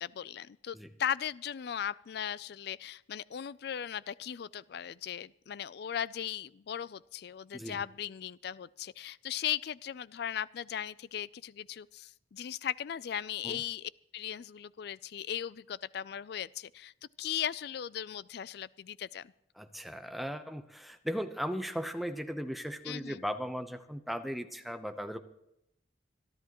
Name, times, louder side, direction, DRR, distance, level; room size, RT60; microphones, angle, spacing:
voice 1, 0.0-16.9 17.2-19.3 22.9-23.2, left 9 dB, 60° left, 20 dB, 0.4 m, -38 dB
voice 2, 19.6-25.2, equal, ahead, 8 dB, 0.8 m, -37 dB
26.5 x 11.0 x 3.0 m, 0.81 s
head